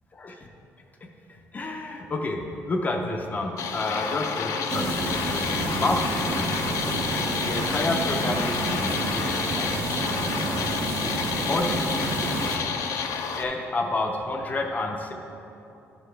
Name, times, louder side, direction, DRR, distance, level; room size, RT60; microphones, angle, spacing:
voice 1, 0.1-0.5 1.0-6.6 7.4-10.5 11.5-12.7 13.4-15.1, left 2 dB, 30° left, 3 dB, 0.5 m, -30 dB
sound 1, 3.6-13.4, left 6 dB, 80° left, 0.5 m, -29 dB
sound 2, 4.7-12.6, right 3 dB, 50° right, 0.6 m, -30 dB
11.0 x 4.8 x 3.3 m, 2.8 s
cardioid pair, 135°, 6 cm